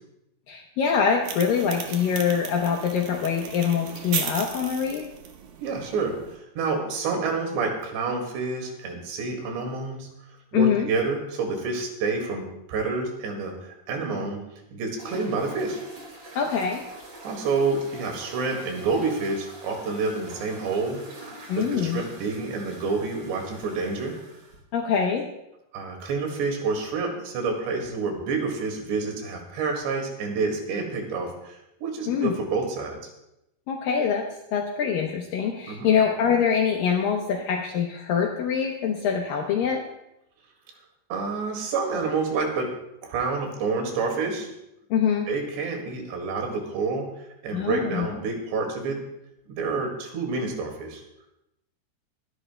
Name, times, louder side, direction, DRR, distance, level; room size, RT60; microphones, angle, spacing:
voice 1, 0.5-5.1 10.5-10.9 16.4-16.8 21.5-22.0 24.7-25.3 32.1-32.3 33.7-39.8 44.9-45.3 47.5-48.1, left 7 dB, 70° left, 1 dB, 2.3 m, -24 dB
sound 1, 1.2-6.4, right 7 dB, 65° right, 2.7 m, -36 dB
voice 2, 5.6-10.1 10.5-12.4 12.7-14.4 14.7-15.8 17.2-21.0 21.6-24.2 25.7-33.1 35.7-36.0 41.1-42.7 43.0-44.5 45.3-47.1 47.4-49.0 49.5-51.0, right 4 dB, 90° right, 2 dB, 4.2 m, -28 dB
sound 2, 15.0-24.6, right 1 dB, 30° right, 3.6 m, -44 dB
24.5 x 11.5 x 2.2 m, 0.86 s
omnidirectional pair, 4.9 m